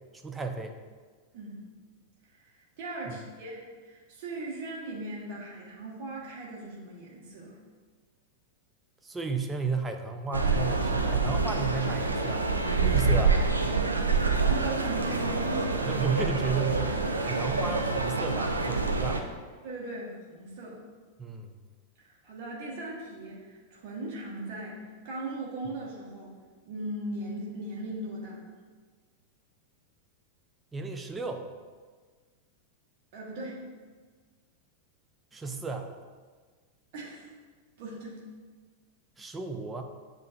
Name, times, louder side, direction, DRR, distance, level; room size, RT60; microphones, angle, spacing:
voice 1, 0.2-0.7 9.0-12.4 12.8-13.4 15.9-19.2 21.2-21.5 30.7-31.5 35.3-35.9 39.2-39.8, right 4 dB, 15° right, 4 dB, 0.4 m, -33 dB
voice 2, 2.3-7.6 14.4-16.0 19.6-20.8 22.0-26.3 26.7-28.4 33.1-33.7 36.9-37.3 37.8-38.2, right 2 dB, 50° right, -4 dB, 1.0 m, -38 dB
sound 1, 10.3-19.2, right 4 dB, 80° right, 0.3 m, -27 dB
7.5 x 2.5 x 2.3 m, 1.5 s
figure-of-eight pair, 90°, 0 cm